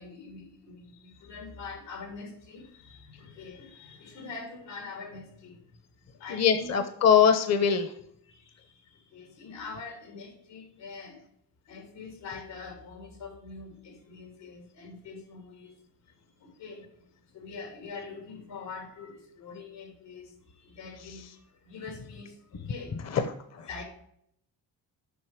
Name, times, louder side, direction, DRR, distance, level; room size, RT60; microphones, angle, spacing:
voice 1, 0.0-5.7 6.1-6.8 8.2-11.2 11.7-15.8 16.1-16.9 17.2-23.0 23.7-23.8, left 4 dB, 85° left, 4 dB, 2.9 m, -44 dB
voice 2, 6.3-7.9 23.1-23.2 23.6-23.7, left 7 dB, 40° left, 9 dB, 0.8 m, -22 dB
7.9 x 5.5 x 4.9 m, 0.69 s
cardioid pair, 115°, 42 cm